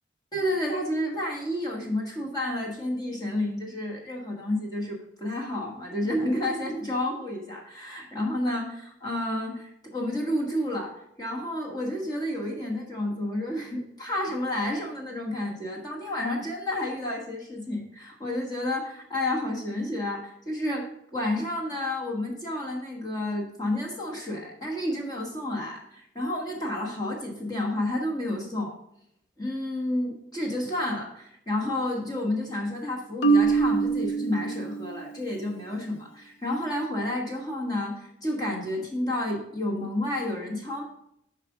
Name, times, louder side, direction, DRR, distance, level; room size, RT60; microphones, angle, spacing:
voice 1, 0.3-28.8 29.4-40.8, left 1 dB, 20° left, -1 dB, 1.4 m, -30 dB
Marimba xylophone, 33.2-35.3, right 4 dB, 85° left, 0.6 m, -24 dB
7.7 x 4.9 x 4.9 m, 0.78 s
head